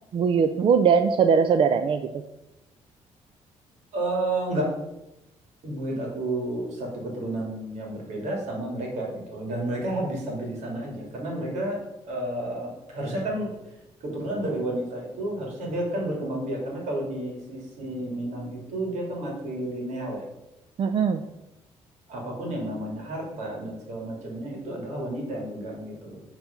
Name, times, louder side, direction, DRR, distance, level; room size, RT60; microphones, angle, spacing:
voice 1, 0.1-2.0 20.8-21.2, right 6 dB, 45° right, 8 dB, 0.4 m, -20 dB
voice 2, 3.9-4.7 5.6-11.8 12.1-13.5 14.0-20.3 22.1-26.2, right 1 dB, 80° right, -1 dB, 2.6 m, -31 dB
7.0 x 4.2 x 5.1 m, 0.94 s
cardioid pair, 115°, 12 cm